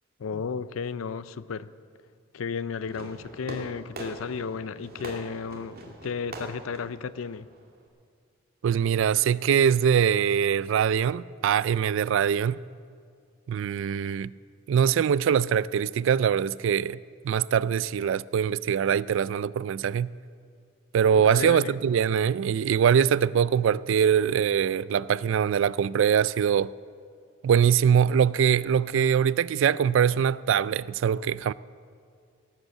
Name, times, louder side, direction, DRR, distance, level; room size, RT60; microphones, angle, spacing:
voice 1, 0.2-1.7 2.3-7.5 21.2-21.8, left 5 dB, 80° left, 0.5 m, -33 dB
Fireworks, 2.8-7.9, right 1 dB, 50° right, 2.1 m, -42 dB
voice 2, 8.6-12.6 13.5-14.3 14.7-17.0 17.2-20.1 20.9-26.7 27.4-31.5, right 8 dB, 65° right, 0.3 m, -23 dB
18.0 x 8.0 x 7.4 m
head